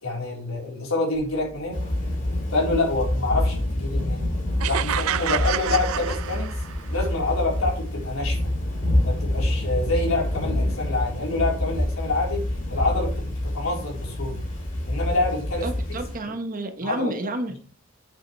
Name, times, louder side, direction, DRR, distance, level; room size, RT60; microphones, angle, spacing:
voice 1, 0.0-1.8 2.5-4.2 4.6-6.5 6.9-8.5 9.0-12.4 12.7-14.4 14.9-15.6 16.8-17.1, left 2 dB, 85° left, -2 dB, 4.0 m, -27 dB
sound 1, 1.1-12.2, right 1 dB, 10° right, 2.5 m, -46 dB
Thunder / Rain, 1.7-16.2, left 1 dB, 40° left, 4.2 m, -27 dB
sound 2, 4.6-6.9, right 11 dB, 80° right, 0.4 m, -28 dB
voice 2, 15.6-17.6, right 1 dB, 40° right, 6 dB, 1.2 m, -30 dB
8.6 x 7.5 x 3.2 m, 0.40 s
head